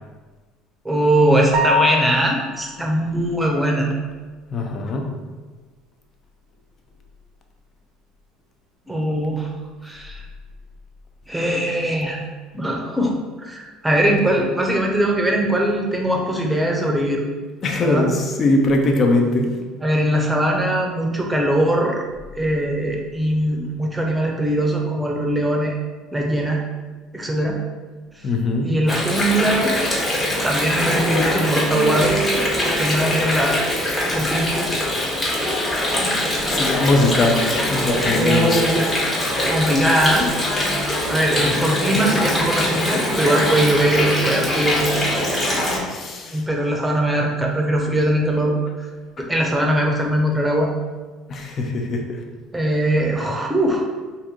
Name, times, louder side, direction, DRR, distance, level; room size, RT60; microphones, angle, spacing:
voice 1, 0.8-3.9 8.9-9.5 9.8-10.2 11.3-12.2 12.5-17.2 17.8-18.1 19.8-22.0 22.3-25.8 26.1-26.6 27.1-27.6 28.6-29.8 30.4-32.2 32.6-33.6 34.1-34.8 35.8-36.2 38.1-38.9 39.3-40.3 41.1-44.9 46.3-48.5 49.2-50.7 52.5-53.9, right 1 dB, 10° right, 0 dB, 0.7 m, -21 dB
sound 1, 1.5-2.6, left 3 dB, 70° right, 0.5 m, -22 dB
voice 2, 4.5-5.1 17.6-19.5 28.2-28.7 36.4-38.6 45.9-46.4 51.3-52.2, left 2 dB, 45° left, 2 dB, 0.6 m, -21 dB
Water, 28.9-45.8, left 1 dB, 25° left, 1.1 m, -22 dB
2.8 x 2.6 x 3.6 m, 1.3 s
hypercardioid pair, 75°, 0 cm